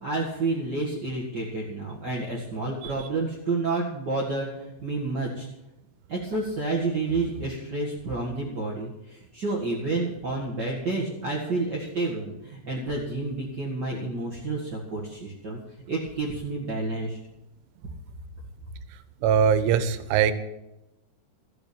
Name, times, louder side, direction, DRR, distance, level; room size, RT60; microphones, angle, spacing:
voice 1, 0.0-5.5 6.1-15.6 15.9-17.2, right 3 dB, 45° right, -4 dB, 1.3 m, -30 dB
voice 2, 19.2-20.3, right 8 dB, 90° right, 12 dB, 3.4 m, -21 dB
14.0 x 7.9 x 8.6 m, 0.92 s
omnidirectional pair, 5.3 m